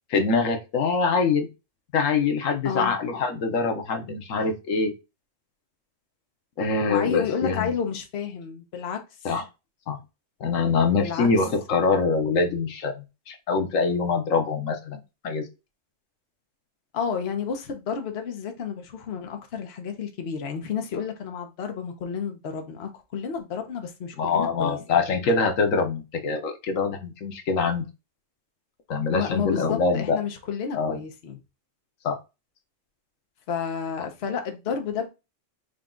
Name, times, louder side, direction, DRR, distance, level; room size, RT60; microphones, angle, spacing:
voice 1, 0.1-1.5 1.9-4.9 6.6-7.7 9.2-9.4 9.9-10.0 10.4-15.5 24.2-27.8 28.9-30.2 30.7-31.0 32.0-32.2, left 4 dB, 85° left, 1.2 m, -24 dB
voice 2, 6.9-9.0 11.0-11.5 16.9-24.8 29.1-31.4 33.5-35.1, left 6 dB, 60° left, 1.0 m, -31 dB
5.1 x 2.3 x 3.7 m
omnidirectional pair, 1.3 m